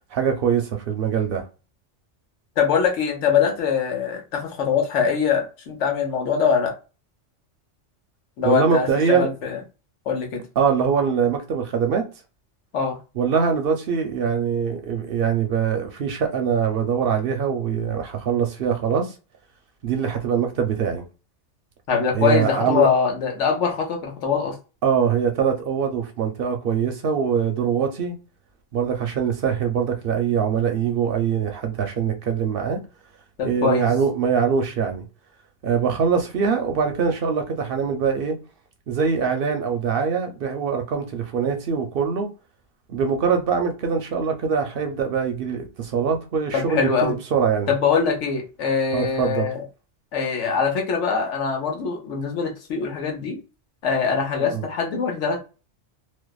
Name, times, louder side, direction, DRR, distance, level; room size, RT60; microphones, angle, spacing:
voice 1, 0.1-1.4 8.4-9.3 10.6-12.0 13.2-19.1 19.8-21.0 22.1-22.9 24.8-28.2 28.7-32.8 33.4-35.0 35.6-38.4 38.9-42.3 42.9-47.7 48.9-49.5 54.4-54.6, right 6 dB, 60° right, 0.6 m, -23 dB
voice 2, 2.6-6.7 8.4-9.6 10.1-10.4 12.7-13.0 21.9-24.6 33.4-33.9 46.5-47.2 47.7-49.6 50.1-53.4 53.8-55.4, left 6 dB, 85° left, 1.1 m, -23 dB
2.6 x 2.2 x 2.2 m
omnidirectional pair, 1.2 m